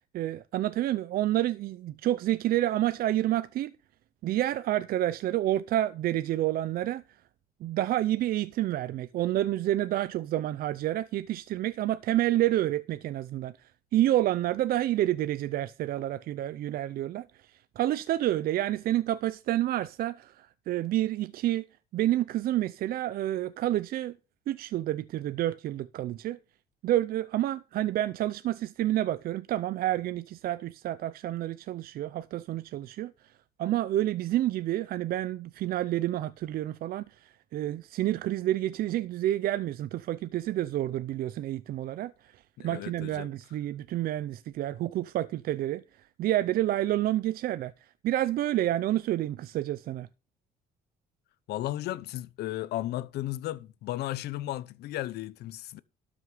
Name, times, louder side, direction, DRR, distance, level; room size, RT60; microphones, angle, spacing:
voice 1, 0.1-3.7 4.2-7.0 7.6-21.7 21.9-24.2 24.5-26.4 26.8-33.1 33.6-45.8 46.2-50.1, right 13 dB, 60° right, 0.5 m, -29 dB
voice 2, 42.6-43.3 51.5-55.8, left 15 dB, 75° left, 0.8 m, -35 dB
12.5 x 6.3 x 5.6 m
cardioid pair, 110°, 17 cm